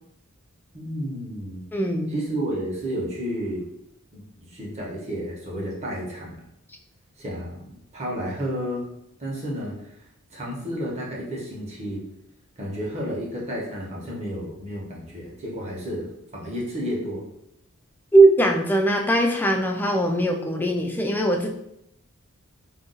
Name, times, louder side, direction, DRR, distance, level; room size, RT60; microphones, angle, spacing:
voice 1, 0.7-1.6 2.1-3.6 4.1-6.4 7.2-8.9 9.2-9.9 10.3-12.0 12.6-17.2, equal, 30° right, -4 dB, 0.9 m, -31 dB
voice 2, 1.7-2.1 18.1-21.5, right 2 dB, 10° left, 2 dB, 0.3 m, -20 dB
2.5 x 2.3 x 3.9 m, 0.77 s
head